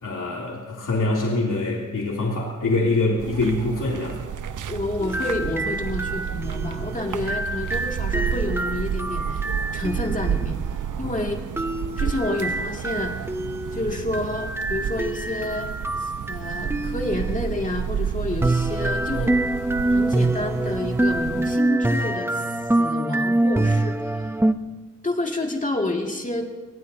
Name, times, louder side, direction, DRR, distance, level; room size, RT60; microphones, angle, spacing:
voice 1, 0.0-4.2 11.0-11.1, left 2 dB, 85° left, -3 dB, 2.9 m, -24 dB
sound 1, 3.2-21.6, right 8 dB, 80° right, 0.7 m, -31 dB
voice 2, 4.7-9.5 9.7-10.6 11.0-11.4 12.0-13.1 13.7-15.7 16.0-19.4 19.9-22.5 22.8-24.3 25.0-26.5, left 2 dB, 25° left, 1 dB, 2.2 m, -29 dB
sound 2, 5.0-10.3 11.6-17.3 18.4-24.5, right 1 dB, 10° right, 0.6 m, -25 dB
24.0 x 20.5 x 2.8 m, 1.3 s
wide cardioid pair, 130°, 31 cm